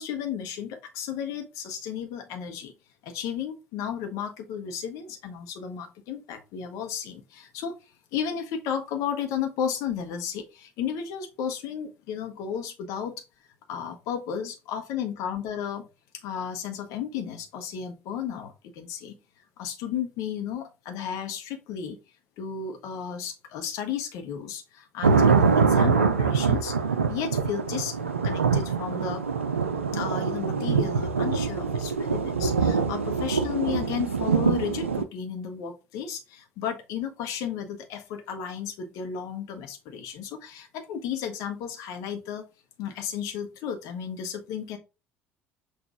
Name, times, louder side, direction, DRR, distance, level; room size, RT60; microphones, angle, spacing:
voice 1, 0.0-2.7 3.0-7.8 8.1-13.2 13.7-15.9 16.2-19.2 19.6-22.0 22.4-26.8 27.1-27.9 28.2-29.2 29.9-42.4 42.8-44.8, left 8 dB, 55° left, 6 dB, 1.0 m, -33 dB
sound 1, 25.0-35.0, right 5 dB, 80° right, 0.4 m, -24 dB
5.9 x 2.6 x 3.5 m, 0.29 s
figure-of-eight pair, 60°, 7 cm